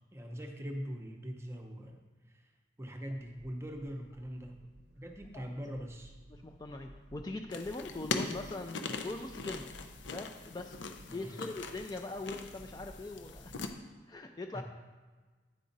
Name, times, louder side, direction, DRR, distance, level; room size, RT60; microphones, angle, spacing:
voice 1, 0.1-2.0 2.3-2.4 2.8-4.6 5.0-6.2 11.1-11.4 14.5-14.6, equal, 15° right, 3 dB, 0.7 m, -42 dB
sound 1, 3.0-13.7, right 1 dB, 65° right, 0.6 m, -56 dB
voice 2, 6.3-9.7 10.1-13.7 14.1-14.6, left 2 dB, 20° left, 4 dB, 0.4 m, -42 dB
sound 2, 7.5-13.7, left 4 dB, 90° left, 0.6 m, -41 dB
9.4 x 4.9 x 4.0 m, 1.3 s
head